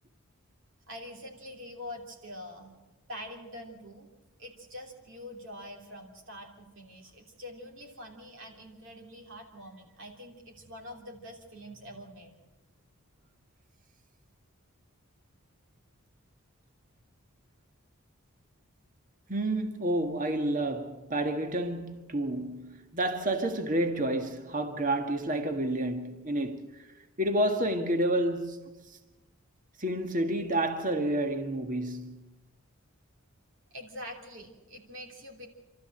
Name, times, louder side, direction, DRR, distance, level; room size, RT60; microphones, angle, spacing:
voice 1, 0.9-2.7 3.1-4.1 4.4-12.3 33.7-35.5, left 1 dB, 55° right, 3.2 m, -45 dB
voice 2, 19.3-26.9 27.2-28.7 29.8-32.3, right 1 dB, 35° right, 1.7 m, -29 dB
27.5 x 13.5 x 7.9 m
head